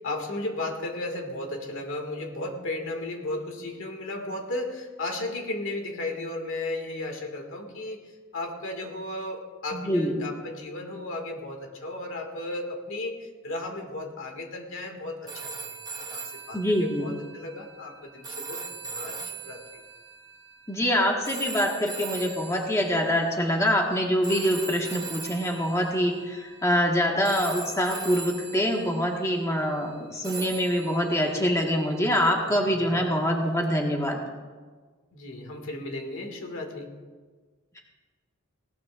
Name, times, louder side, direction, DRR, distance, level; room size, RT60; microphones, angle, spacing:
voice 1, 0.0-8.0 8.3-19.8 32.4-33.1 35.1-36.9, left 2 dB, 65° left, 3 dB, 2.0 m, -35 dB
voice 2, 9.7-10.1 16.5-17.1 20.7-34.2, equal, 15° left, 0 dB, 1.5 m, -25 dB
sound 1, 15.3-23.5 24.2-26.9 27.3-29.4 30.2-32.5 33.6-33.8, right 4 dB, 20° right, 1.4 m, -40 dB
19.5 x 18.0 x 2.5 m, 1.4 s
head